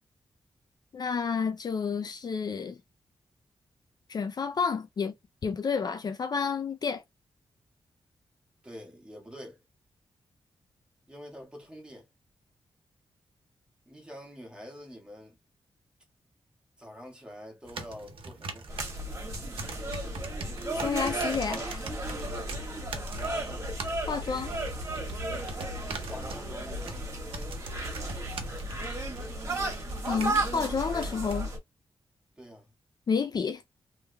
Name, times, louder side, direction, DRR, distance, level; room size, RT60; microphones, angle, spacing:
voice 1, 0.9-2.8 4.1-5.1 5.4-7.0 20.7-21.8 24.1-24.5 30.1-31.5 33.1-33.6, left 5 dB, 45° left, 0.4 m, -30 dB
voice 2, 8.6-9.6 11.1-12.1 13.8-15.4 16.8-18.7 23.1-23.7 25.7-27.2 32.4-32.7, equal, 10° right, 1.6 m, -46 dB
sound 1, 17.7-31.4, right 3 dB, 70° right, 0.9 m, -43 dB
sound 2, 18.7-31.6, right 1 dB, 30° right, 1.5 m, -34 dB
3.4 x 3.1 x 2.2 m
wide cardioid pair, 120°, 9 cm